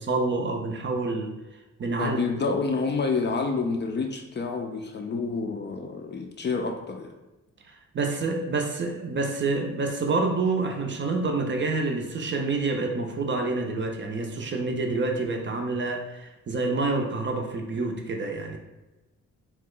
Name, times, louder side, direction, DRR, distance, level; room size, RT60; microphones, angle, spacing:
voice 1, 0.0-1.3 1.8-2.2 7.7-18.6, right 3 dB, 40° right, 3 dB, 0.5 m, -28 dB
voice 2, 2.0-7.1, left 4 dB, 35° left, 3 dB, 0.4 m, -28 dB
2.8 x 2.1 x 3.7 m, 1.1 s
cardioid pair, 85°, 30 cm